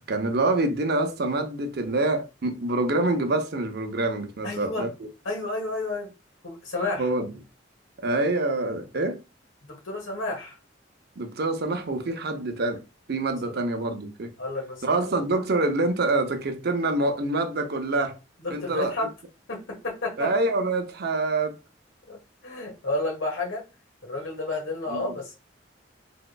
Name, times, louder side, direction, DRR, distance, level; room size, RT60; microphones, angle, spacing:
voice 1, 0.0-5.1 7.0-7.3 8.0-9.2 11.2-12.8 13.1-14.3 14.8-18.2 18.5-18.9 20.2-21.5 24.9-25.1, right 2 dB, 55° right, 0.6 m, -26 dB
voice 2, 4.4-4.9 5.2-6.1 6.4-7.0 9.7-10.5 13.5-13.6 14.4-14.8 15.1-15.2 18.4-19.1 19.5-20.3 22.1-23.6 24.0-25.3, left 2 dB, 90° left, 1.3 m, -31 dB
3.5 x 3.0 x 2.2 m
head